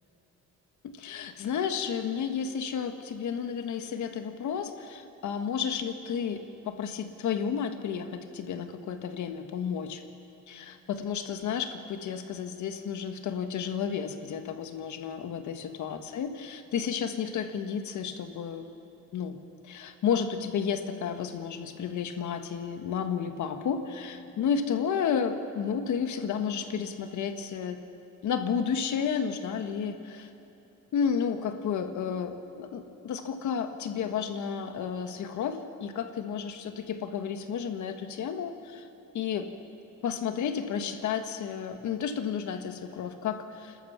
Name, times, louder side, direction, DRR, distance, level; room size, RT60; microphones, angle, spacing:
voice 1, 0.8-10.0 10.5-18.6 19.1-19.4 19.6-27.8 28.2-30.3 30.9-38.9 39.1-39.5 40.0-43.8, left 7 dB, 75° left, 7 dB, 1.7 m, -32 dB
29.0 x 13.0 x 7.0 m, 2.9 s
cardioid pair, 90°, 30 cm